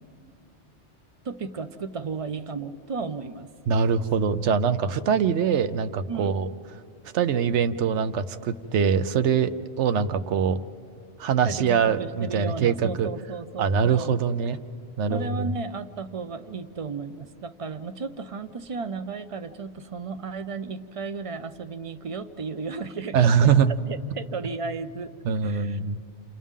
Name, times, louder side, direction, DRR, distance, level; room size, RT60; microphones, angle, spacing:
voice 1, 1.2-3.5 6.1-6.4 11.4-14.2 15.1-25.1 25.4-25.8, right 4 dB, 35° right, 11 dB, 0.6 m, -34 dB
voice 2, 3.7-6.5 7.1-9.5 9.8-10.6 11.2-13.1 13.6-14.6 15.0-15.5 23.1-23.7 25.2-26.0, right 7 dB, 75° right, 11 dB, 1.0 m, -23 dB
29.5 x 28.5 x 3.7 m, 2.5 s
omnidirectional pair, 1.2 m